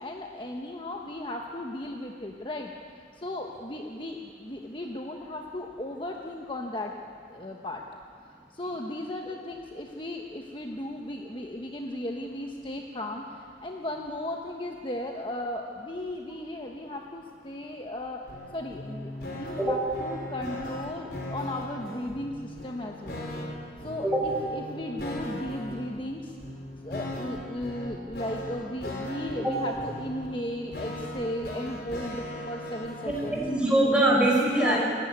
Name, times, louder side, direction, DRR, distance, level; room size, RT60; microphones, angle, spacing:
voice 1, 0.0-2.7 3.1-6.9 7.3-7.8 8.2-18.3 18.5-23.3 23.8-26.4 26.8-33.4 34.5-34.9, left 1 dB, 30° left, 1 dB, 1.2 m, -36 dB
sound 1, 18.3-33.6, left 1 dB, 60° left, 4.7 m, -38 dB
voice 2, 33.0-34.8, right 1 dB, 5° right, -3 dB, 4.9 m, -23 dB
28.5 x 11.0 x 9.6 m, 2.1 s
head